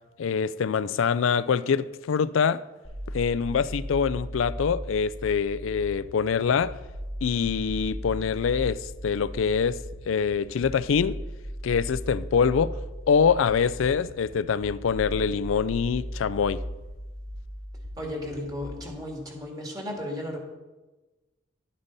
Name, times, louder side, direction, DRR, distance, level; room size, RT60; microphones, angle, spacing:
voice 1, 0.2-2.6 3.1-6.7 7.2-9.8 10.1-11.2 11.6-12.7 13.1-16.6, left 6 dB, 75° left, 0.4 m, -24 dB
sound 1, 2.8-18.8, equal, 70° right, 3.5 m, -37 dB
voice 2, 18.0-20.4, left 1 dB, 20° right, 2.2 m, -34 dB
11.5 x 8.9 x 4.0 m
head